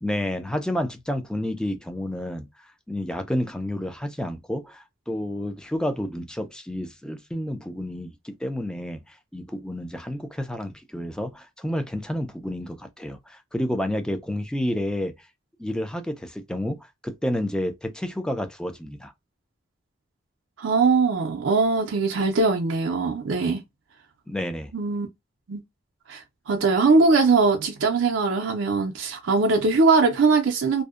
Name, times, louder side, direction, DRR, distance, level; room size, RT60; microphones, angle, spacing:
voice 1, 0.0-15.1 15.6-19.1 24.3-24.7, left 1 dB, 5° left, 0.4 m, -30 dB
voice 2, 20.6-23.6 24.7-25.1 25.5-25.6 26.1-30.8, right 4 dB, 75° right, 0.4 m, -21 dB
2.6 x 2.1 x 2.3 m
head